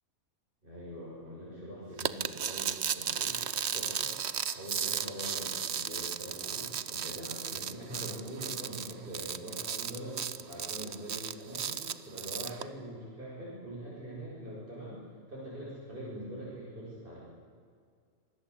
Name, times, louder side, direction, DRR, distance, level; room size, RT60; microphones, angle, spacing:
voice 1, 0.6-3.4 3.7-15.0 15.3-17.2, equal, 35° right, -7 dB, 7.3 m, -43 dB
sound 1, 2.0-12.6, right 8 dB, 55° right, 1.1 m, -35 dB
26.5 x 20.5 x 8.5 m, 2.1 s
omnidirectional pair, 1.5 m